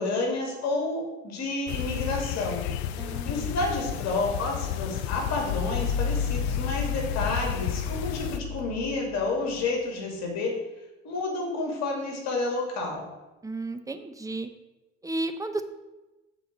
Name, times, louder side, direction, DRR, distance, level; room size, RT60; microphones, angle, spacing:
voice 1, 0.0-2.7 3.0-10.5 11.0-13.0, left 3 dB, 55° left, 0 dB, 2.7 m, -30 dB
sound 1, 1.7-8.4, left 11 dB, 75° left, 0.5 m, -32 dB
voice 2, 3.0-3.5 13.4-14.5 15.0-15.6, right 2 dB, 10° right, 8 dB, 0.8 m, -33 dB
sound 2, 5.1-9.7, left 5 dB, 10° left, 2.8 m, -32 dB
7.0 x 4.7 x 6.5 m, 1.1 s
hypercardioid pair, 65°, 32 cm